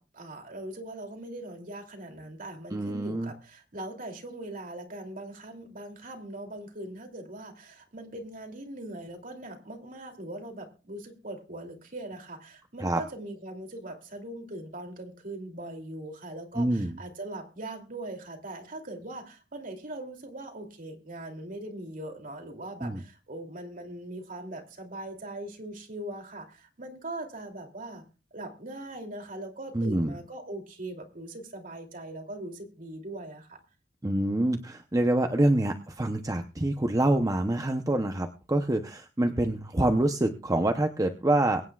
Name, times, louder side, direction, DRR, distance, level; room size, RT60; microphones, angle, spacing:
voice 1, 0.0-28.0 28.3-33.6, right 1 dB, 50° right, 3 dB, 2.8 m, -41 dB
voice 2, 2.7-3.3 12.8-13.0 16.5-16.9 22.8-23.0 29.7-30.1 34.0-41.6, right 1 dB, 20° right, 6 dB, 0.7 m, -26 dB
22.5 x 9.7 x 2.4 m, 0.34 s
head